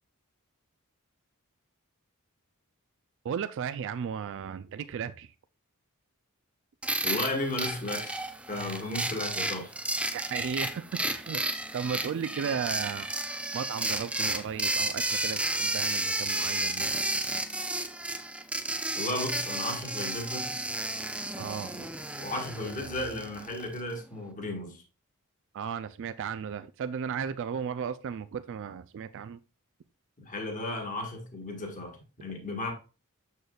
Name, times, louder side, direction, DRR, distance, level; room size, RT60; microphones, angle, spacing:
voice 1, 3.2-5.3 8.7-8.8 10.1-11.4 11.7-13.1 13.5-17.0 21.4-21.9 25.5-29.4, right 7 dB, 60° right, 0.3 m, -35 dB
sound 1, 6.8-23.8, right 2 dB, 5° right, 0.5 m, -32 dB
voice 2, 7.0-8.2 8.5-9.7 19.0-20.5 22.2-24.8 30.2-32.7, left 2 dB, 35° left, 1.6 m, -34 dB
6.7 x 6.4 x 2.3 m
head